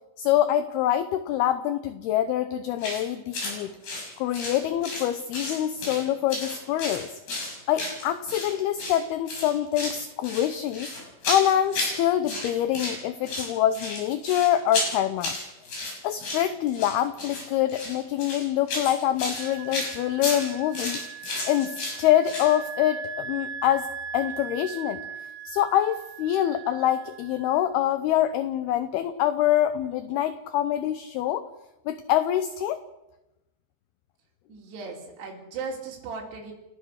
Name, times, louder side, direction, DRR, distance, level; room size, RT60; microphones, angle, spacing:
voice 1, 0.2-3.8 4.2-7.1 7.7-10.9 11.3-15.4 16.0-21.0 21.4-23.9 24.1-25.0 25.5-31.4 31.9-32.8, left 11 dB, 75° left, 12 dB, 2.4 m, -25 dB
sound 1, 2.8-3.0 3.3-3.6 3.8-5.1 5.3-6.0 6.3-8.5 8.8-9.0 9.3-10.0 10.2-12.0 12.3-13.0 13.3-22.5, left 2 dB, 60° left, 8.2 m, -32 dB
Wind instrument woodwind instrument, 19.3-27.6, right 6 dB, 85° right, 3.9 m, -40 dB
voice 2, 34.5-36.5, right 4 dB, 65° right, -3 dB, 5.3 m, -37 dB
30.0 x 14.5 x 6.5 m, 0.96 s
omnidirectional pair, 5.3 m